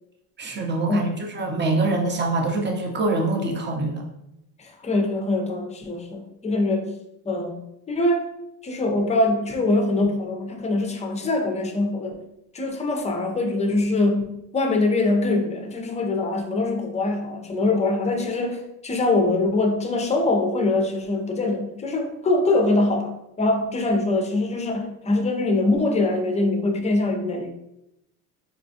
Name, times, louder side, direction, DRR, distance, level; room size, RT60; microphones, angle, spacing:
voice 1, 0.4-4.0, right 2 dB, 25° right, 1 dB, 0.7 m, -24 dB
voice 2, 4.6-6.9 7.3-8.2 8.6-12.1 12.5-14.2 14.5-27.5, left 2 dB, 15° left, 4 dB, 0.5 m, -23 dB
4.2 x 2.2 x 2.7 m, 0.84 s
supercardioid pair, 95°, 44 cm